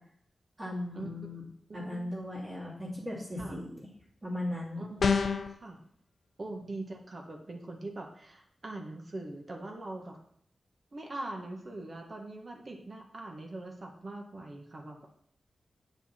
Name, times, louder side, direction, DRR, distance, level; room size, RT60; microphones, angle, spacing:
voice 1, 0.6-1.4 1.7-3.9 4.2-4.8, left 1 dB, 30° right, -5 dB, 2.5 m, -37 dB
voice 2, 1.7-2.1 3.4-3.6 4.8-5.8 6.4-10.2 10.9-15.1, right 2 dB, 45° right, 2 dB, 1.4 m, -42 dB
sound 1, 5.0-5.5, left 5 dB, 70° left, 0.6 m, -26 dB
8.0 x 5.5 x 4.3 m, 0.65 s
wide cardioid pair, 90°, 0 cm